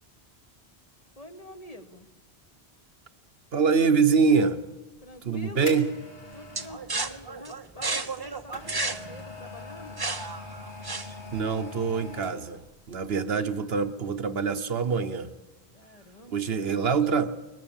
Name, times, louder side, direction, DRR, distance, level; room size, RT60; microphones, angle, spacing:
voice 1, 1.2-2.1 5.0-5.8 6.3-10.0 15.7-17.2, left 1 dB, 35° left, 7 dB, 1.3 m, -46 dB
voice 2, 3.5-4.6 5.2-5.9 11.3-12.6 12.9-15.3 16.3-17.3, right 5 dB, 65° right, 10 dB, 1.1 m, -24 dB
sound 1, 5.0-6.8 8.0-12.7 13.0-13.1, left 2 dB, 85° left, 3.3 m, -42 dB
sound 2, 6.5-11.4, right 3 dB, 25° right, 0.8 m, -33 dB
22.0 x 19.0 x 7.2 m, 1.2 s
omnidirectional pair, 1.1 m